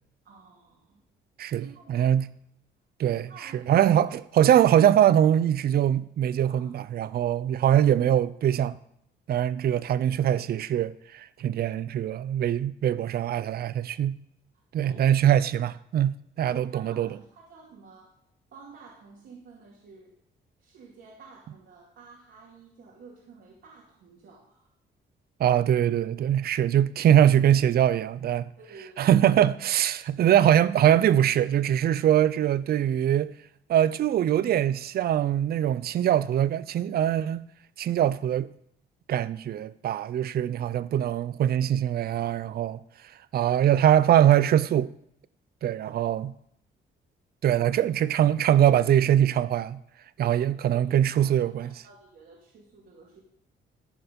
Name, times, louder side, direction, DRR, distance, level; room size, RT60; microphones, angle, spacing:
voice 1, 0.2-1.0 1.5-2.1 3.1-3.8 6.5-6.7 14.8-15.0 16.4-18.1 18.5-20.1 20.6-24.7 28.6-29.1 45.9-46.2 47.5-47.7 50.2-53.2, right 4 dB, 75° right, 2.5 m, -51 dB
voice 2, 1.4-2.3 3.0-8.8 9.3-14.2 14.7-17.1 25.4-28.5 29.0-33.3 33.7-37.4 37.8-38.5 39.1-42.8 43.3-44.9 45.6-46.3 47.4-49.8 50.2-51.7, right 10 dB, 50° right, 0.4 m, -22 dB
14.0 x 4.7 x 5.3 m
cardioid pair, 90°, 20 cm